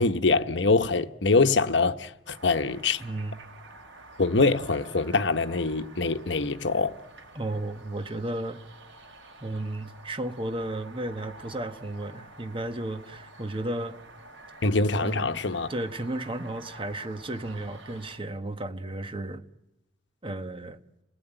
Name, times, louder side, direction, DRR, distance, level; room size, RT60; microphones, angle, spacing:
voice 1, 0.0-3.0 4.2-6.9 14.6-15.7, left 3 dB, 75° left, 1.1 m, -24 dB
sound 1, 2.2-18.2, right 2 dB, 90° right, 4.7 m, -49 dB
voice 2, 3.0-3.4 7.3-8.6 9.4-14.0 15.0-15.4 15.7-19.4 20.2-20.8, right 1 dB, 30° right, 1.3 m, -33 dB
29.5 x 18.5 x 9.0 m
head